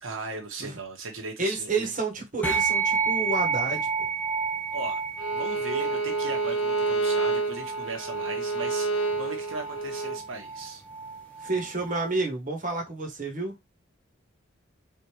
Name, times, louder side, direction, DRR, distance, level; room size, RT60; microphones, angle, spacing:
voice 1, 0.0-1.9 4.7-5.0 5.3-10.8, right 3 dB, 75° right, 1.5 m, -38 dB
voice 2, 1.4-4.1 11.4-13.7, right 3 dB, 40° right, 1.5 m, -30 dB
sound 1, 2.4-12.1, right 5 dB, 10° left, 0.9 m, -31 dB
Bowed string instrument, 5.2-10.2, right 3 dB, 90° left, 0.9 m, -29 dB
4.2 x 3.5 x 3.1 m
head